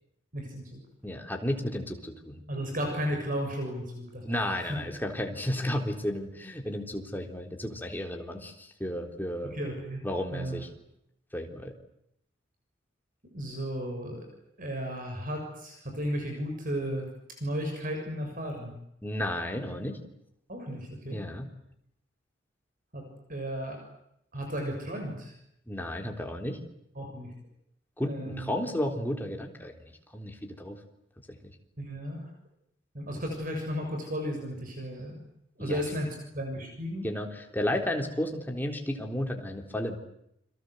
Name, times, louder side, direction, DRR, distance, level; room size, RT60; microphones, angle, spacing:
voice 1, 0.3-0.8 2.5-4.8 9.4-10.6 13.3-14.3 14.6-18.7 20.5-21.2 22.9-23.8 24.3-25.3 26.9-27.3 28.0-28.5 31.8-32.2 32.9-35.2 35.6-37.1, equal, 45° right, 3 dB, 6.8 m, -34 dB
voice 2, 1.0-2.4 4.2-9.5 10.0-10.7 11.3-11.7 19.0-20.0 21.1-21.5 25.7-26.6 28.0-30.8 31.4-31.5 35.6-35.8 37.0-40.0, left 1 dB, 10° left, 3 dB, 3.9 m, -33 dB
29.5 x 23.5 x 8.1 m, 0.77 s
head